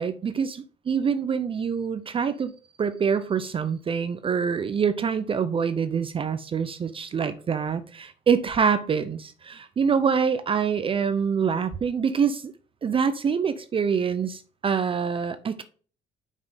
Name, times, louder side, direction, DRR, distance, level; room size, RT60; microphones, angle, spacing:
voice 1, 0.0-0.6 0.9-2.5 2.8-12.5 12.8-15.6, right 6 dB, 30° right, 0.5 m, -25 dB
5.5 x 4.7 x 3.8 m
cardioid pair, 110°, 17 cm